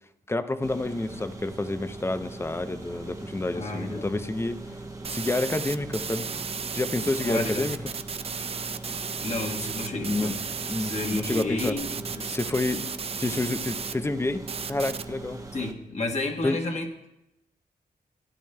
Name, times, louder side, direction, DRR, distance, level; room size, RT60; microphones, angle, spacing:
voice 1, 0.3-4.6 5.1-6.3 6.7-7.9 10.0-10.3 10.7-11.8 12.3-12.9 13.2-15.4 16.4-16.6, left 2 dB, 15° left, 11 dB, 0.5 m, -29 dB
sound 1, 0.6-15.7, right 2 dB, 20° right, 0.9 m, -41 dB
voice 2, 3.5-4.2 7.2-7.7 9.2-10.4 10.8-12.4 15.5-17.1, left 2 dB, 45° left, 3 dB, 1.3 m, -31 dB
sound 2, 5.0-13.9 14.5-15.0, right 6 dB, 40° right, 0.4 m, -34 dB
16.0 x 10.0 x 2.2 m, 0.86 s
cardioid pair, 80°, 16 cm